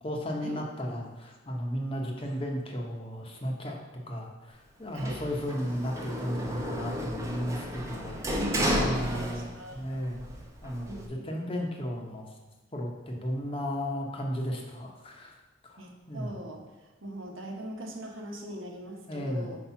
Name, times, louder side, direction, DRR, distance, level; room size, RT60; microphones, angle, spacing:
voice 1, 0.0-3.8 4.1-10.2 10.6-12.3 12.7-15.4 15.6-16.3 19.1-19.5, equal, 30° left, 1 dB, 0.8 m, -34 dB
Sliding door, 5.0-9.8 10.1-11.1, equal, 15° right, 0.7 m, -32 dB
voice 2, 8.5-10.0 10.8-11.3 15.8-16.7 17.0-19.6, equal, 85° right, 1 dB, 1.1 m, -40 dB
4.7 x 4.3 x 5.6 m, 1.1 s
head